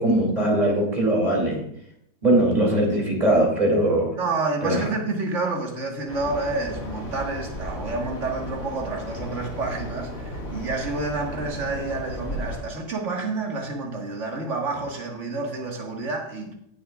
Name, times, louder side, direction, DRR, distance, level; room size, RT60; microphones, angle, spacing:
voice 1, 0.0-1.6 2.2-4.1 4.6-4.9, right 1 dB, 25° right, -1 dB, 2.7 m, -21 dB
voice 2, 4.2-16.5, right 3 dB, 45° right, 1 dB, 1.9 m, -29 dB
sound 1, 6.1-12.6, left 1 dB, 50° left, 2.2 m, -34 dB
17.5 x 7.0 x 2.4 m, 0.73 s
omnidirectional pair, 1.9 m